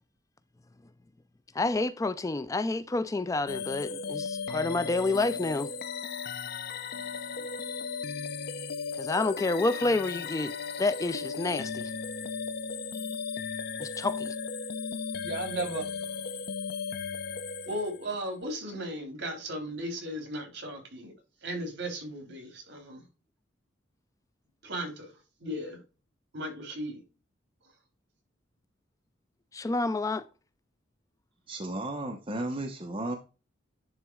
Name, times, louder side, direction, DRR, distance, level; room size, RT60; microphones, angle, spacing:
voice 1, 1.6-5.7 9.0-11.9 13.8-14.3 29.5-30.2, left 2 dB, 15° left, 0.4 m, -29 dB
sound 1, 3.5-18.2, left 5 dB, 55° left, 0.6 m, -36 dB
voice 2, 15.2-15.8 17.6-21.1 21.4-23.0 24.6-25.1 25.4-25.8 26.3-27.0, right 1 dB, 65° right, 3.3 m, -36 dB
voice 3, 31.5-33.2, right 1 dB, 30° right, 1.1 m, -34 dB
10.5 x 3.6 x 4.6 m
head